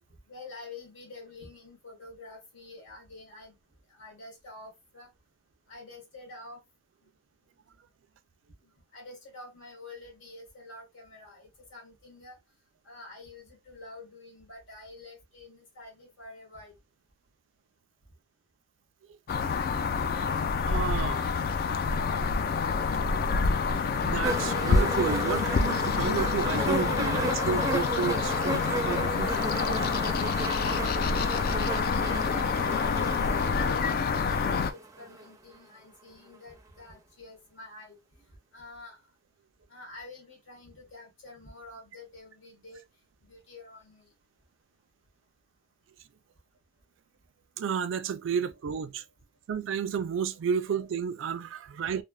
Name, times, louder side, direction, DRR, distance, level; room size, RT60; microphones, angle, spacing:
voice 1, 0.3-3.6 3.9-5.1 5.7-6.6 8.6-12.4 12.8-16.7 31.8-39.0 39.7-42.8 43.2-44.1, left 2 dB, 80° left, 1.4 m, -48 dB
sound 1, 19.3-34.7, left 5 dB, 50° left, 0.3 m, -27 dB
voice 2, 20.2-21.3 21.6-21.7 24.0-29.4 30.7-31.2 47.6-49.0 49.5-52.0, right 7 dB, 85° right, 0.3 m, -32 dB
sound 2, 24.2-35.3 36.3-36.4, right 2 dB, 20° right, 0.4 m, -34 dB
3.2 x 2.0 x 2.3 m
head